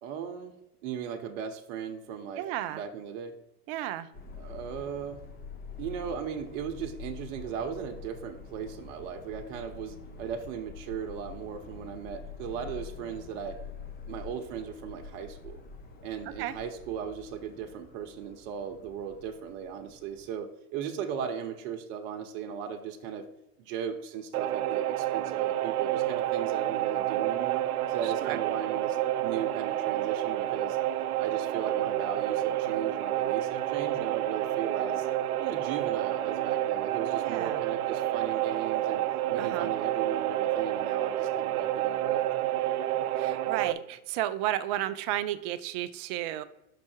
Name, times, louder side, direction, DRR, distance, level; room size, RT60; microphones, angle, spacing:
voice 1, 0.0-0.5 0.8-3.3 4.4-5.2 5.8-13.6 14.1-15.6 16.0-23.3 23.6-30.8 31.2-35.1 35.4-42.7, right 7 dB, 50° right, 5 dB, 1.1 m, -37 dB
voice 2, 2.4-2.8 3.7-4.1 16.4-16.5 28.0-28.4 37.2-37.6 39.4-39.7 43.2-46.4, right 13 dB, 35° right, 12 dB, 0.5 m, -33 dB
Subway metro underground, 4.1-20.3, left 5 dB, 20° left, 1.1 m, -46 dB
sound 1, 24.3-43.7, right 13 dB, 75° right, 0.7 m, -29 dB
6.0 x 5.7 x 4.5 m, 0.89 s
hypercardioid pair, 120°, 44 cm